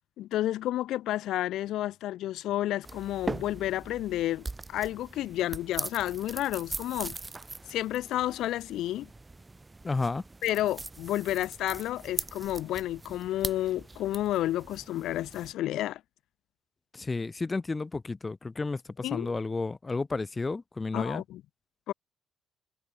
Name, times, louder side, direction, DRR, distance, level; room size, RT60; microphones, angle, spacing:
voice 1, 0.2-7.2 7.7-9.1 10.4-16.0 19.0-19.3 20.9-21.4 21.9-22.0, left 14 dB, 85° left, 0.6 m, -31 dB
sound 1, 2.8-15.5, right 3 dB, 20° right, 1.3 m, -41 dB
voice 2, 9.8-10.2 16.9-21.2, left 3 dB, 25° left, 1.0 m, -32 dB
cardioid pair, 90°, 0 cm